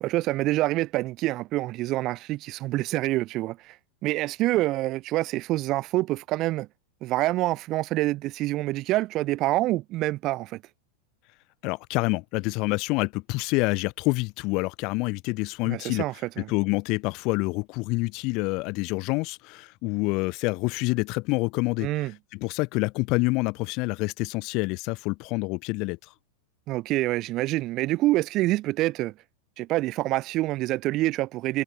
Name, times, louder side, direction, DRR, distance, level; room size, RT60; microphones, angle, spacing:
voice 1, 0.0-3.8 4.0-6.7 7.0-10.6 15.7-16.5 21.8-22.1 26.7-29.1 29.6-31.6, right 17 dB, 35° right, 0.4 m, -26 dB
voice 2, 11.6-16.1 16.4-26.0, left 26 dB, 40° left, 0.5 m, -27 dB
figure-of-eight pair, 90°, 0 cm